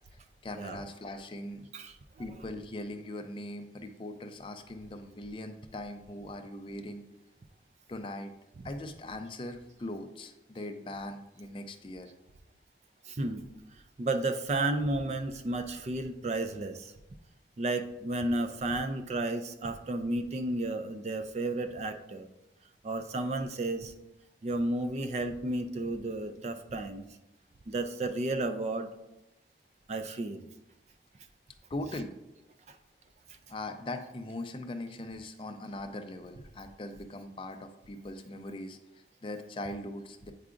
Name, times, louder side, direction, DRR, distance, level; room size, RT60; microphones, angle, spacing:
voice 1, 0.4-1.6 2.2-7.0 7.9-8.3 8.6-12.1 31.7-32.1 33.5-40.3, left 1 dB, 30° left, 6 dB, 0.4 m, -40 dB
voice 2, 13.1-13.4 14.0-16.9 17.6-22.3 22.8-23.9 24.4-27.0 27.7-28.9 29.9-30.4 32.7-32.8, right 2 dB, 40° right, 8 dB, 0.3 m, -32 dB
8.2 x 4.7 x 2.5 m, 0.92 s
head